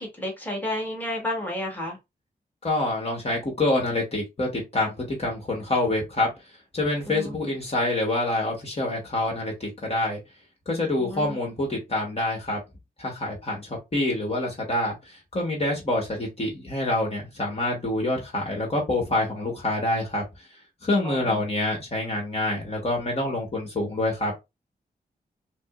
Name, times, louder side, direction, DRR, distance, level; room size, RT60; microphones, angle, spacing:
voice 1, 0.0-2.0 7.1-7.3 11.0-11.4 21.0-21.4, left 1 dB, 10° left, 1.4 m, -31 dB
voice 2, 2.6-6.3 6.7-10.2 10.7-12.6 13.0-20.2 20.8-24.3, left 2 dB, 40° left, 1.3 m, -26 dB
5.9 x 2.0 x 2.4 m
wide cardioid pair, 115°, 17 cm